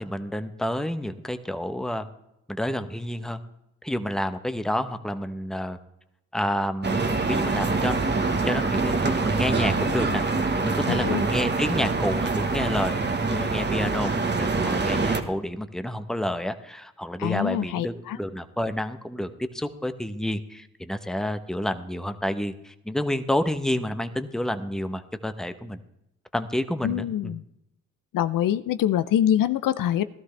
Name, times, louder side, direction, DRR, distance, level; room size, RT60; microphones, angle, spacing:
voice 1, 0.0-2.0 2.5-3.4 3.8-5.8 6.3-7.0 7.3-8.0 8.4-10.2 10.6-25.8 26.3-27.3, left 1 dB, ahead, 9 dB, 0.9 m, -29 dB
sound 1, 6.8-15.2, right 3 dB, 30° right, 1.2 m, -25 dB
voice 2, 10.9-11.2 17.2-18.2 26.8-27.4 28.1-30.0, left 11 dB, 70° left, 13 dB, 0.6 m, -24 dB
15.0 x 12.5 x 3.3 m, 0.84 s
cardioid pair, 65°, 34 cm